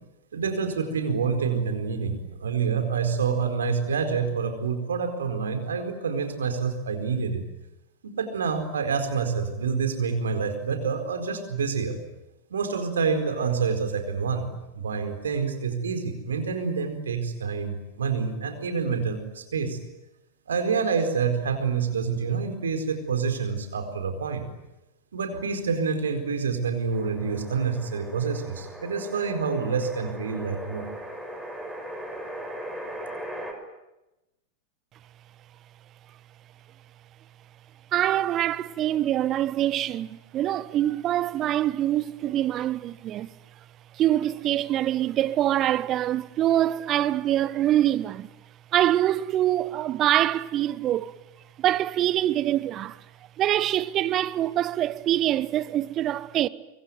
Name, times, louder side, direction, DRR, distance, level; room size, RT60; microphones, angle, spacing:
voice 1, 0.3-7.4 8.0-12.0 12.5-14.5 14.7-19.8 20.5-24.5 25.1-30.8, right 5 dB, 65° right, 4.5 m, -27 dB
sound 1, 26.9-33.5, right 1 dB, ahead, 6.8 m, -39 dB
voice 2, 37.9-43.3 43.9-48.3 48.7-51.1 51.6-53.0 53.4-56.5, right 12 dB, 30° right, 1.1 m, -24 dB
24.5 x 24.5 x 9.4 m
figure-of-eight pair, 90°, 0 cm